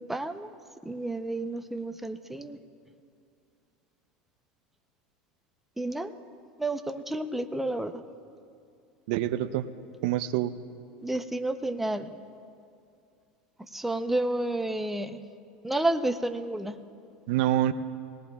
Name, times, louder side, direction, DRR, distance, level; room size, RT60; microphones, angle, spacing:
voice 1, 0.1-0.5 0.9-2.6 5.8-6.1 6.6-7.9 11.0-12.1 13.7-15.1 15.6-16.8, right 1 dB, 5° right, 8 dB, 0.6 m, -30 dB
voice 2, 9.1-9.7 10.0-10.5 17.3-17.7, right 12 dB, 70° right, 12 dB, 0.6 m, -26 dB
21.5 x 18.5 x 2.3 m, 2.4 s
supercardioid pair, 115°, 5 cm